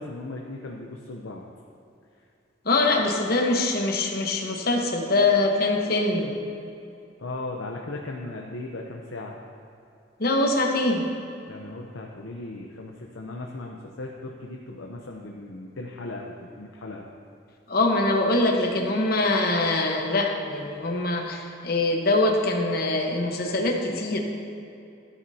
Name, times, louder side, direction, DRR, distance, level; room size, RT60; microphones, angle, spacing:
voice 1, 0.0-1.4 7.2-9.3 11.5-17.1, left 2 dB, 90° left, 0 dB, 0.7 m, -37 dB
voice 2, 2.6-6.3 10.2-11.1 17.7-24.2, left 2 dB, 50° left, 1 dB, 1.1 m, -23 dB
12.5 x 11.0 x 2.8 m, 2.7 s
head